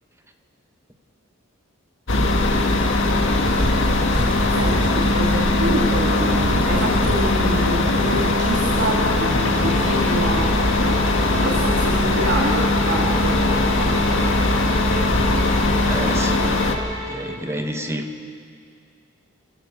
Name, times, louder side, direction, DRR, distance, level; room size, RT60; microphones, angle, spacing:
sound 1, 2.1-16.8, left 2 dB, 65° left, 1.8 m, -20 dB
sound 2, 3.4-16.2, equal, 25° left, 3.4 m, -31 dB
voice 1, 4.1-10.6 11.3-13.4, right 1 dB, 60° right, -2 dB, 2.4 m, -27 dB
sound 3, 8.5-17.4, equal, ahead, 7.2 m, -32 dB
voice 2, 15.9-16.6 17.1-18.1, right 1 dB, 15° right, 4 dB, 1.5 m, -29 dB
28.5 x 14.5 x 7.3 m, 2.3 s
head